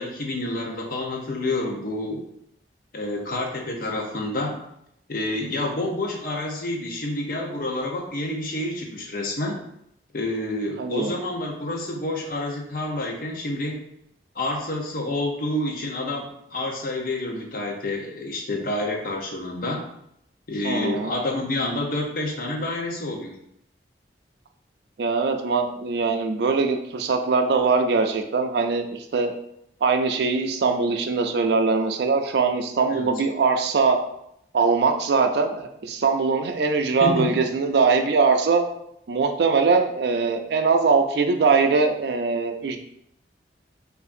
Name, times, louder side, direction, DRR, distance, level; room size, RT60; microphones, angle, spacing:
voice 1, 0.0-2.2 2.9-4.6 5.1-9.6 10.1-13.8 14.3-19.8 20.5-23.3 32.9-33.1 37.0-37.4, left 2 dB, 50° left, 1 dB, 0.7 m, -28 dB
voice 2, 10.8-11.1 20.6-21.1 25.0-29.3 29.8-34.0 34.5-38.6 39.1-42.8, right 4 dB, 65° right, 5 dB, 0.4 m, -22 dB
4.7 x 2.5 x 2.5 m, 0.76 s
head